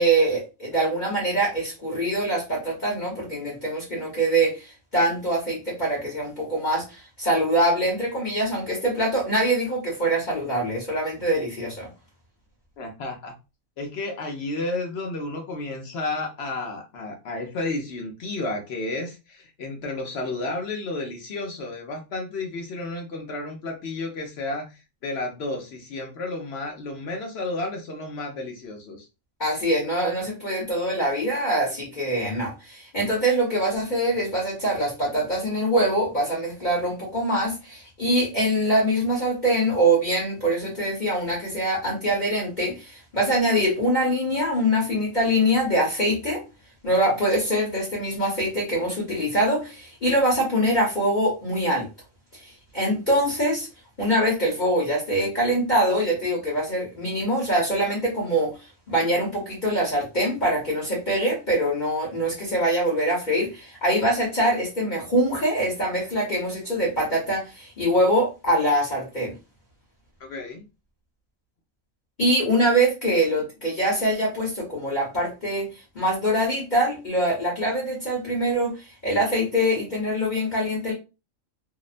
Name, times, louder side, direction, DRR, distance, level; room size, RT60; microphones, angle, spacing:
voice 1, 0.0-11.9 29.4-46.4 46.8-51.9 52.3-53.7 54.0-58.5 58.9-69.3 72.2-75.7 75.9-78.7 79.0-80.9, right 1 dB, 40° left, -6 dB, 1.0 m, -24 dB
voice 2, 12.8-13.3 13.8-29.1 70.2-70.6, left 2 dB, 60° left, 2 dB, 0.8 m, -32 dB
2.8 x 2.0 x 2.4 m, 0.28 s
omnidirectional pair, 1.4 m